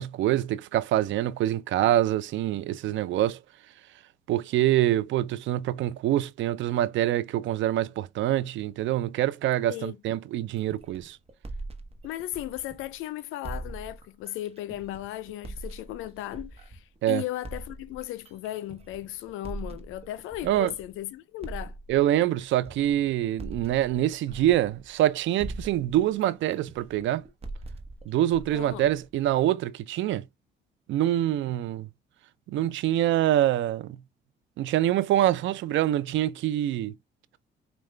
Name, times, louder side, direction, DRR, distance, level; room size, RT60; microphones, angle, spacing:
voice 1, 0.0-3.4 4.3-11.2 17.0-17.2 20.4-20.7 21.9-27.2 28.1-30.2 30.9-31.9 32.5-34.0 34.6-36.9, right 13 dB, 75° right, 0.4 m, -25 dB
sound 1, 10.6-13.0 13.4-17.0 17.4-21.0 21.4-25.1 25.4-29.5, right 2 dB, 30° right, 0.9 m, -42 dB
voice 2, 12.0-21.8 28.5-28.9, left 14 dB, 90° left, 0.4 m, -36 dB
5.0 x 2.2 x 3.2 m
cardioid pair, 90°, 20 cm